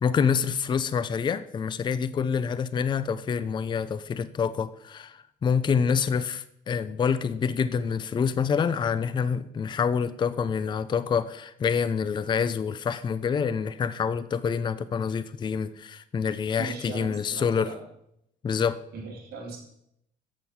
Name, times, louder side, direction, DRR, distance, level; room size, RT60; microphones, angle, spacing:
voice 1, 0.0-17.7 18.4-18.8, left 6 dB, 25° left, 14 dB, 0.4 m, -27 dB
voice 2, 16.6-17.8 18.9-19.6, right 4 dB, 65° right, 0 dB, 2.6 m, -38 dB
7.5 x 6.6 x 5.6 m, 0.76 s
cardioid pair, 110°, 17 cm